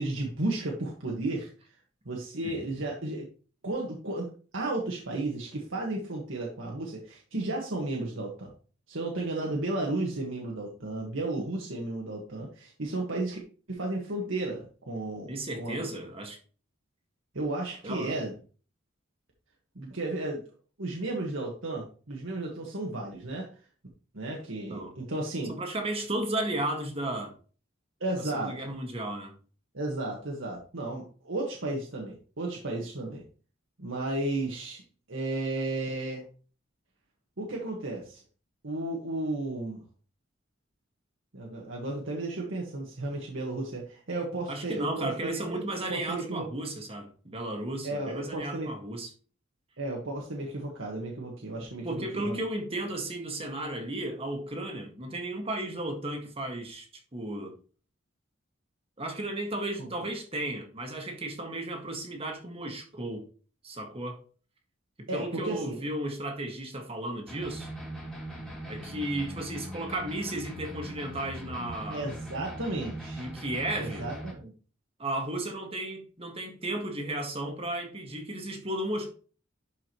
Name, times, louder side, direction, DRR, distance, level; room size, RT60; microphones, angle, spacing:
voice 1, 0.0-1.5 2.0-3.3 3.6-8.5 8.9-13.4 13.7-15.3 15.6-15.9 17.3-18.3 19.7-20.4 20.8-23.5 24.1-25.5 28.0-28.7 29.7-33.2 33.8-34.8 35.1-36.3 37.4-38.2 38.6-39.8 41.3-46.5 47.8-48.7 49.8-52.4 52.8-52.9 59.8-59.9 65.1-65.8 71.9-73.3 73.7-74.5, right 2 dB, 75° right, 1.7 m, -33 dB
voice 2, 15.3-16.4 17.8-18.2 24.7-24.9 25.5-27.3 28.3-29.3 44.5-49.1 51.8-56.9 57.1-57.6 59.0-63.3 63.6-64.2 65.1-67.7 68.7-72.1 73.2-74.1 75.0-79.1, right 1 dB, 30° right, 1.8 m, -34 dB
sound 1, 67.3-74.3, right 1 dB, 5° left, 2.4 m, -41 dB
11.5 x 4.9 x 3.1 m
head